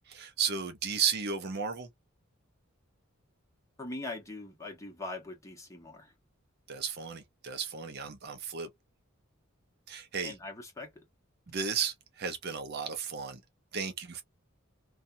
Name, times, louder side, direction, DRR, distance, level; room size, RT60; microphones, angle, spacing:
voice 1, 0.1-1.9 6.7-8.7 9.9-10.3 11.5-13.4 13.7-14.2, right 6 dB, 50° right, 0.6 m, -34 dB
voice 2, 3.8-6.1 10.2-10.9, left 2 dB, 15° left, 1.1 m, -41 dB
2.7 x 2.3 x 2.6 m
head